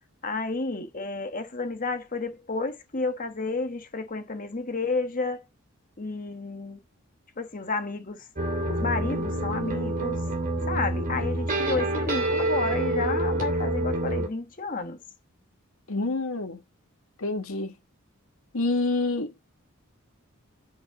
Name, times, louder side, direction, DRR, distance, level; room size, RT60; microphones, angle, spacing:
voice 1, 0.2-5.5 6.0-6.8 7.4-8.3 8.7-10.2 10.7-15.0, left 3 dB, 40° left, 1.3 m, -31 dB
sound 1, 8.4-14.3, right 1 dB, 40° right, 2.6 m, -27 dB
voice 2, 15.9-16.6 17.2-17.7 18.5-19.5, left 2 dB, 75° left, 1.7 m, -27 dB
7.3 x 5.3 x 6.8 m
head